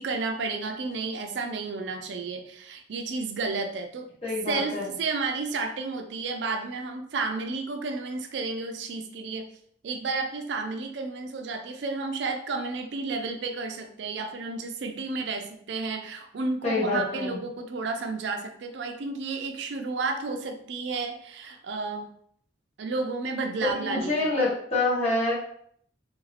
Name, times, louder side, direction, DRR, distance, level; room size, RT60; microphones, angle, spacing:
voice 1, 0.0-4.1 4.5-9.5 9.8-22.1 22.8-24.3, right 3 dB, 70° right, 5 dB, 0.4 m, -32 dB
voice 2, 4.2-4.9 16.6-17.4 23.7-25.3, left 2 dB, 35° left, -7 dB, 1.2 m, -27 dB
2.7 x 2.5 x 3.2 m, 0.65 s
head